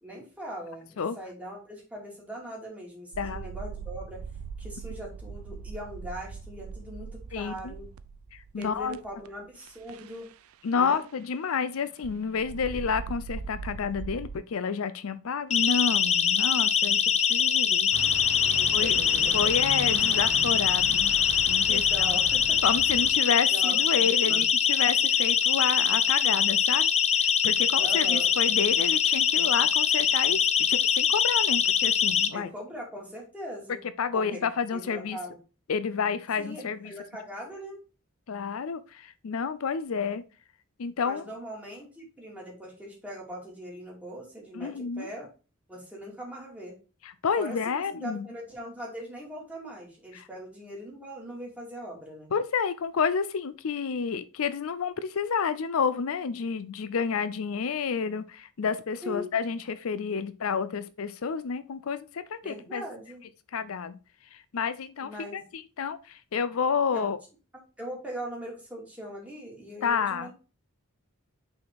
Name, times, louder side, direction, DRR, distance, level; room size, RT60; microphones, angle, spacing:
voice 1, 0.0-4.2 4.6-7.9 8.6-10.3 10.7-11.0 18.4-19.3 21.6-22.6 23.5-24.4 27.8-28.3 32.3-33.8 34.1-34.4 34.7-35.4 36.4-37.8 41.0-45.3 45.7-46.7 47.4-52.3 59.0-59.3 62.4-63.2 65.0-65.4 66.9-67.1 67.8-70.3, equal, 5° right, 2.6 m, -40 dB
sound 1, 3.1-9.3 9.7-10.3 10.8-11.0 12.0-14.4, right 5 dB, 80° right, 0.5 m, -40 dB
voice 2, 7.3-7.7 8.3-9.0 10.6-17.0 17.3-17.9 18.7-19.0 19.3-21.1 21.5-22.1 22.6-26.9 27.1-30.4 30.7-32.5 34.0-35.2 35.7-36.9 38.3-40.2 40.8-41.2 44.5-45.1 47.0-48.3 50.1-50.3 52.3-62.8 63.5-64.0 64.3-67.2 69.8-70.3, left 6 dB, 75° left, 0.5 m, -30 dB
Siren, 15.5-32.3, left 8 dB, 30° left, 0.6 m, -23 dB
sound 2, 17.9-23.1, right 2 dB, 60° right, 1.2 m, -39 dB
6.0 x 4.2 x 4.7 m
head